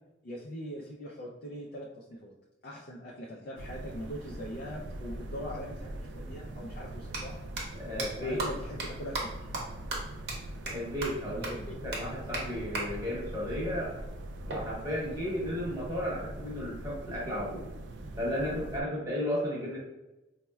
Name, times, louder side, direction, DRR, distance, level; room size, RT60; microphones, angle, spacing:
voice 1, 0.2-2.3 2.6-7.4 7.9-9.4 11.2-11.7, equal, 55° left, -3 dB, 0.4 m, -42 dB
sound 1, 3.6-18.8, right 1 dB, 75° right, 0.3 m, -42 dB
sound 2, 7.1-7.2 7.6-7.7 8.0-8.1 8.4-8.5 8.8-8.9 9.1-9.2 9.5-9.6 9.9-10.0 10.3-10.4 10.7-10.8 11.0-11.1 11.4-11.5 11.9-12.0 12.3-12.4 12.7-12.8 14.5-15.5, right 3 dB, 60° right, 0.7 m, -35 dB
voice 2, 7.8-8.4 10.7-13.9 14.4-17.6 18.2-19.8, equal, 20° right, -5 dB, 0.9 m, -34 dB
4.2 x 2.1 x 2.2 m, 0.99 s
head